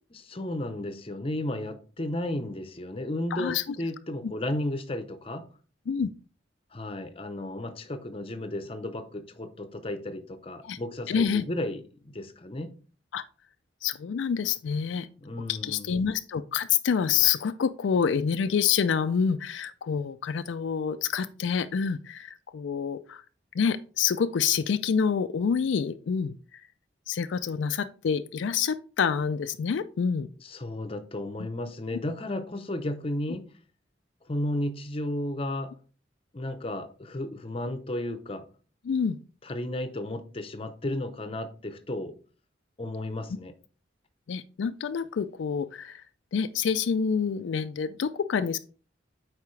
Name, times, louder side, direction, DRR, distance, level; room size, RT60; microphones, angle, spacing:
voice 1, 0.1-5.5 6.7-12.7 15.2-16.0 30.4-33.4 34.3-35.7 36.3-38.5 39.4-42.1 42.8-43.5, left 1 dB, 30° left, 0.7 m, -33 dB
voice 2, 3.3-3.8 4.2-4.3 5.9-6.1 10.6-10.8 11.1-11.4 13.1-13.2 13.8-15.1 15.5-23.2 23.5-26.6 27.1-30.3 38.9-39.2 44.3-46.0 46.3-48.6, left 6 dB, 75° left, 0.4 m, -27 dB
8.2 x 4.8 x 3.2 m
head